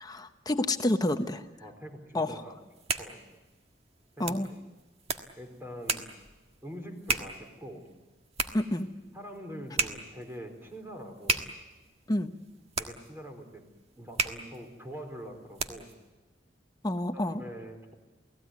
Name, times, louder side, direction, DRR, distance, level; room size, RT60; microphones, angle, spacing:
voice 1, 0.0-1.4 2.1-2.4 4.2-4.5 8.5-8.9 12.1-12.3 16.8-17.4, left 1 dB, 20° left, 8 dB, 0.9 m, -29 dB
voice 2, 1.6-2.6 3.0-3.2 4.2-4.6 5.4-6.1 6.6-7.8 9.1-11.4 12.8-13.6 14.0-15.9 17.1-17.9, equal, 15° right, 4 dB, 4.4 m, -44 dB
sound 1, 2.5-16.0, right 4 dB, 35° right, 1.6 m, -36 dB
29.0 x 18.5 x 9.4 m, 1.2 s
head